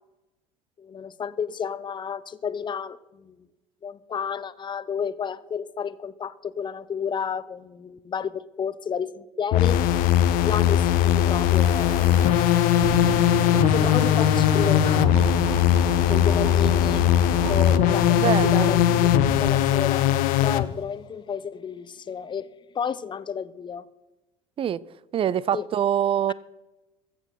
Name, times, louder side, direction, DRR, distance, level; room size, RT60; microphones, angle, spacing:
voice 1, 0.8-3.5 3.8-9.8 10.4-12.7 13.5-15.4 16.1-17.1 17.5-19.1 19.4-22.5 22.7-23.8 25.5-25.7, left 7 dB, 25° left, 0.7 m, -31 dB
sound 1, 9.5-20.6, left 11 dB, 50° left, 0.9 m, -20 dB
sound 2, 11.5-16.0, equal, 85° right, 4.3 m, -39 dB
sound 3, 12.8-20.0, right 6 dB, 70° right, 1.3 m, -32 dB
voice 2, 18.1-18.7 24.6-24.8 25.1-26.3, right 9 dB, 30° right, 0.5 m, -24 dB
22.0 x 8.1 x 4.4 m
figure-of-eight pair, 65°, 18 cm